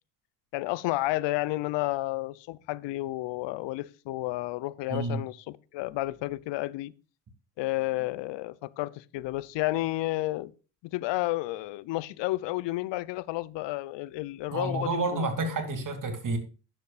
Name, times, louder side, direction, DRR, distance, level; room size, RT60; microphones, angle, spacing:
voice 1, 0.5-6.9 7.6-10.5 10.9-15.2, left 18 dB, 60° left, 0.8 m, -31 dB
voice 2, 4.9-5.2 14.5-16.4, right 3 dB, 40° right, 2.8 m, -29 dB
12.5 x 10.5 x 2.5 m
hypercardioid pair, 65°, 48 cm